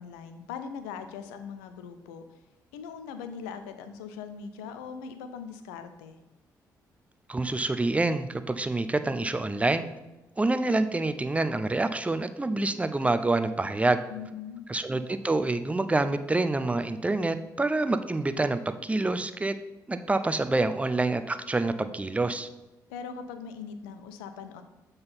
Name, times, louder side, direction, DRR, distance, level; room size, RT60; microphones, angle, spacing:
voice 1, 0.0-2.4 2.7-6.2 14.1-14.7 22.9-24.6, left 6 dB, 70° left, 9 dB, 0.6 m, -40 dB
voice 2, 7.3-9.8 10.4-14.0 14.7-19.6 19.9-22.5, right 2 dB, 15° right, 11 dB, 0.6 m, -27 dB
7.7 x 4.0 x 5.6 m, 1.0 s
figure-of-eight pair, 40°, 10 cm